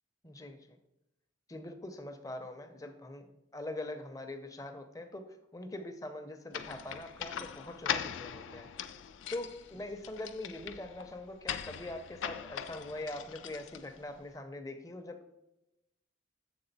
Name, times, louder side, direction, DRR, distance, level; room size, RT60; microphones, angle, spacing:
voice 1, 0.2-0.8 1.5-3.3 3.5-5.3 5.5-8.9 9.3-15.4, left 1 dB, 15° left, 6 dB, 0.5 m, -43 dB
sound 1, 6.5-14.2, left 8 dB, 75° left, 0.4 m, -41 dB
6.9 x 3.7 x 4.0 m, 0.91 s
head